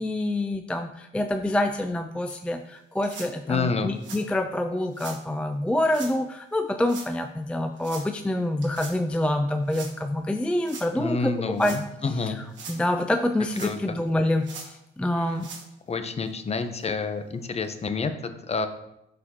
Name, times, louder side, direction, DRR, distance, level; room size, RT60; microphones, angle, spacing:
voice 1, 0.0-11.8 12.0-15.5, left 1 dB, 5° left, 6 dB, 0.3 m, -27 dB
sound 1, 2.3-2.4 3.0-3.3 4.0-4.2 4.9-5.2 5.9-6.1 6.8-7.1 7.8-8.1 8.6-9.0 9.7-9.9 10.6-10.9 11.5-11.8 12.4-12.8 13.5-14.0 14.4-14.7 15.3-15.7 16.3-16.4 16.8-16.9 17.6-17.7, right 5 dB, 65° right, 1.4 m, -41 dB
voice 2, 3.5-3.9 11.0-12.4 13.6-14.0 15.9-18.7, left 4 dB, 30° left, 8 dB, 0.7 m, -28 dB
11.5 x 4.1 x 2.8 m, 0.83 s
cardioid pair, 90°, 20 cm